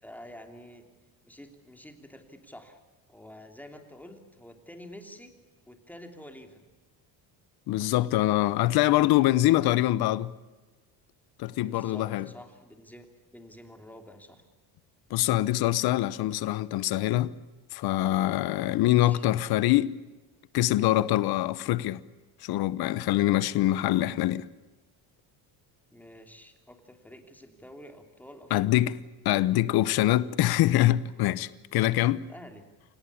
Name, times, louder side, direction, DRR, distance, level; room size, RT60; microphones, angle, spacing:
voice 1, 0.0-0.8 1.2-2.8 3.1-5.3 5.7-6.6 11.6-13.1 13.3-14.4 18.7-19.2 25.9-28.7 29.2-29.6 32.2-32.6, left 1 dB, 5° left, 3.1 m, -48 dB
voice 2, 7.7-10.3 11.4-12.3 15.1-17.3 17.7-19.9 20.5-22.0 22.4-24.5 28.5-29.0 29.2-32.2, left 15 dB, 65° left, 1.0 m, -24 dB
27.5 x 17.5 x 8.6 m
cardioid pair, 120°, 40 cm